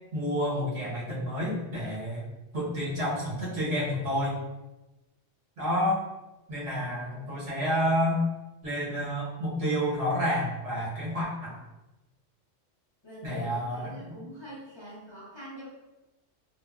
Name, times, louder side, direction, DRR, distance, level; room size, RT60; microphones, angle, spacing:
voice 1, 0.1-2.2 2.5-4.4 5.6-6.0 6.5-8.2 8.6-11.6 13.2-14.2, equal, 70° right, -7 dB, 1.2 m, -29 dB
voice 2, 6.8-7.3 13.0-15.7, equal, 30° left, -10 dB, 0.5 m, -45 dB
3.2 x 2.0 x 2.2 m, 1.0 s
omnidirectional pair, 1.3 m